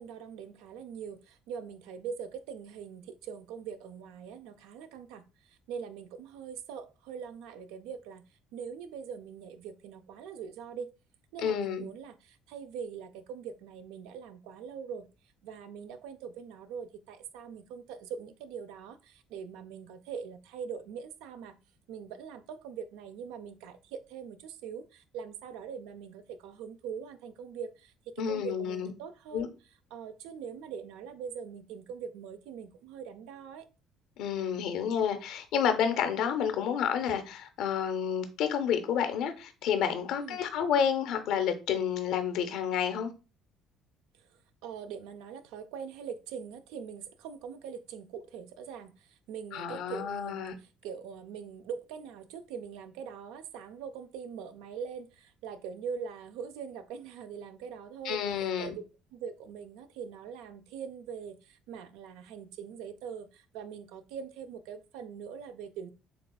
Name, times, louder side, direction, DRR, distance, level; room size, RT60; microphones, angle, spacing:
voice 1, 0.0-8.2 8.5-10.9 11.3-15.1 15.4-21.6 21.9-29.5 29.9-33.7 40.2-40.4 44.2-58.2 58.6-58.8 59.1-65.9, right 7 dB, 85° right, 0.4 m, -42 dB
voice 2, 11.4-11.9 28.2-28.9 29.3-29.5 34.2-43.1 49.5-50.5 58.0-58.8, left 8 dB, 75° left, 0.6 m, -30 dB
6.7 x 2.4 x 2.2 m
supercardioid pair, 75°, 0 cm